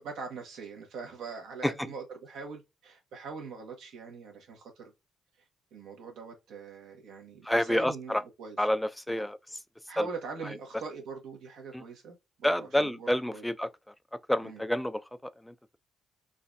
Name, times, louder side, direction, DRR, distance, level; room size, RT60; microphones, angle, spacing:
voice 1, 0.0-4.9 5.7-8.6 9.1-9.3 9.9-13.4 14.4-14.6, right 5 dB, 80° right, 1.3 m, -42 dB
voice 2, 7.4-8.2 8.6-9.6 10.0-10.1 11.7-11.8 12.4-13.7 14.3-15.5, left 1 dB, 5° left, 0.4 m, -29 dB
3.9 x 2.5 x 2.6 m
cardioid pair, 90°, 0 cm